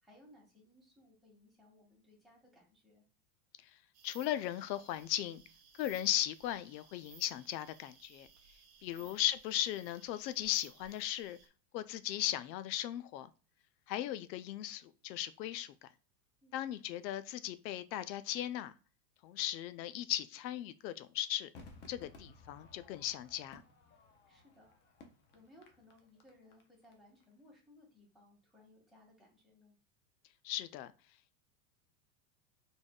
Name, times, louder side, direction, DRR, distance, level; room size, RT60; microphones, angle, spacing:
voice 1, 0.0-3.0 16.4-16.6 24.3-24.8 25.3-29.8, left 1 dB, ahead, 1.8 m, -63 dB
sound 1, 3.9-11.5, right 7 dB, 30° right, 0.7 m, -60 dB
voice 2, 4.0-5.4 5.7-8.3 8.8-11.4 11.7-13.3 13.9-15.9 16.5-18.7 19.2-21.5 21.9-23.6 30.4-30.9, left 13 dB, 80° left, 0.6 m, -37 dB
Crowd / Fireworks, 21.5-26.9 27.2-27.3, left 3 dB, 25° left, 0.5 m, -58 dB
4.1 x 3.4 x 2.3 m
supercardioid pair, 125°, 50 cm